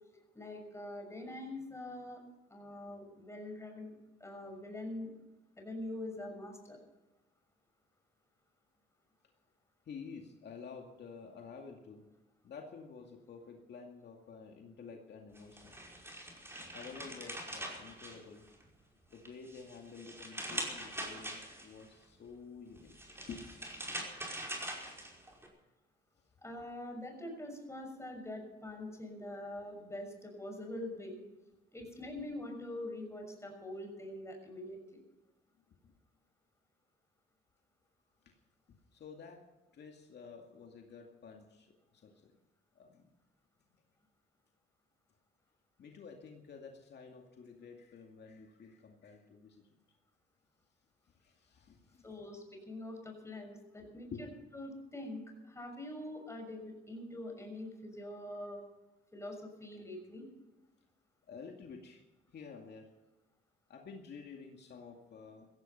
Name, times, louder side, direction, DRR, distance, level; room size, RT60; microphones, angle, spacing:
voice 1, 0.3-2.2 2.5-3.9 4.2-5.1 5.6-6.8 17.2-17.3 26.4-31.2 31.7-35.0 52.0-54.3 54.5-58.6 59.1-60.3, left 1 dB, 15° left, 3 dB, 6.2 m, -44 dB
voice 2, 9.9-12.0 12.4-15.8 16.7-18.4 19.1-23.5 35.8-36.0 38.3-38.4 38.9-39.4 39.7-42.4 42.8-43.1 45.8-49.6 51.1-52.0 54.1-54.2 61.3-62.0 62.3-62.9 63.7-65.5, left 5 dB, 60° left, 2 dB, 2.3 m, -50 dB
sound 1, 15.4-18.7 19.1-21.8 22.8-25.5, right 1 dB, 10° right, 5.2 m, -43 dB
16.5 x 15.5 x 5.7 m, 1.1 s
cardioid pair, 90°, 20 cm